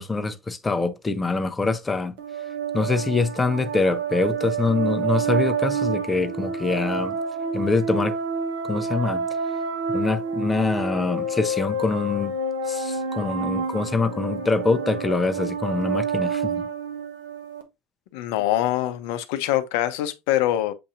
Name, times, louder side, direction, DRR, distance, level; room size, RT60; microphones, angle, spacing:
voice 1, 0.0-2.2 2.7-7.2 7.5-8.2 8.6-9.3 9.9-12.3 12.7-16.7, left 3 dB, 15° left, 0.7 m, -24 dB
sound 1, 2.2-17.6, right 4 dB, 75° right, 1.1 m, -28 dB
voice 2, 18.1-20.7, left 13 dB, 70° left, 0.6 m, -24 dB
7.6 x 2.7 x 2.5 m
hypercardioid pair, 90°, 0 cm